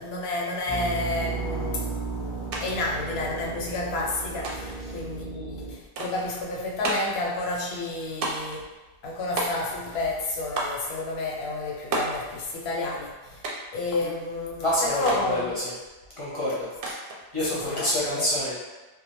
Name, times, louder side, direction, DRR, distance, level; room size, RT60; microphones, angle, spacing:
voice 1, 0.0-8.6 9.0-13.4 13.7-15.5 17.5-18.3, left 2 dB, 75° left, -2 dB, 0.8 m, -30 dB
sound 1, 0.7-5.7, right 4 dB, 15° right, 0.4 m, -34 dB
sound 2, 2.5-2.6 2.9-3.7 4.4-4.9 6.0-6.3 6.8-7.2 8.2-8.6 9.4-9.9 10.6-10.9 11.9-12.2 13.4-13.8 15.1-15.3 16.8-17.2, right 2 dB, 65° right, 0.7 m, -31 dB
voice 2, 14.6-15.7 16.2-16.9 17.3-18.5, equal, 40° left, -8 dB, 0.6 m, -27 dB
2.4 x 2.2 x 2.9 m, 1.2 s
omnidirectional pair, 1.1 m